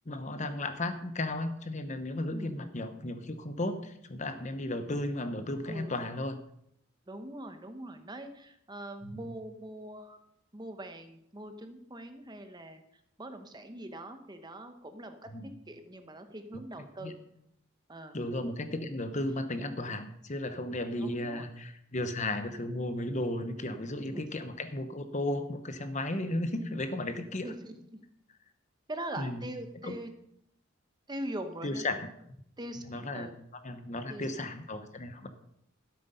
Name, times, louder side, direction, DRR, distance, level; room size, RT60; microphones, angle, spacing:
voice 1, 0.1-6.4 9.0-9.3 15.3-15.4 16.5-16.6 17.0-17.1 18.1-27.5 29.2-29.4 29.8-29.9 31.6-32.1 32.9-33.3 33.6-35.3, left 1 dB, 35° left, 9 dB, 1.0 m, -34 dB
voice 2, 5.7-6.0 7.1-10.2 10.5-12.8 13.2-17.2 17.9-18.2 21.0-21.5 24.1-24.2 27.3-28.0 28.9-30.1 31.1-31.8 32.6-33.3 34.1-34.5 35.2-35.3, right 1 dB, 20° right, 7 dB, 0.9 m, -42 dB
13.0 x 8.0 x 5.5 m, 0.74 s
head